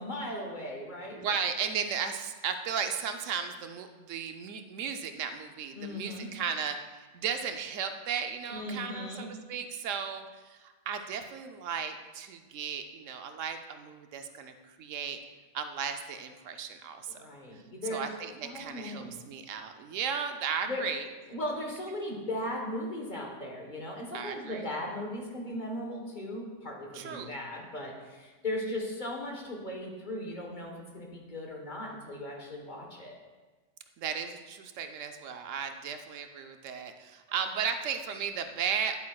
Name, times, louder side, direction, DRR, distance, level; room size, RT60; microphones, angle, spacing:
voice 1, 0.0-1.4 5.7-6.3 8.5-9.3 17.1-18.1 18.4-19.2 20.6-20.9 21.3-33.2, left 1 dB, 40° left, 0 dB, 1.3 m, -37 dB
voice 2, 1.2-15.2 15.5-17.2 17.9-21.1 24.1-24.7 26.9-27.4 34.0-39.0, right 7 dB, 80° right, 7 dB, 1.0 m, -35 dB
10.5 x 8.3 x 2.3 m, 1.3 s
omnidirectional pair, 1.3 m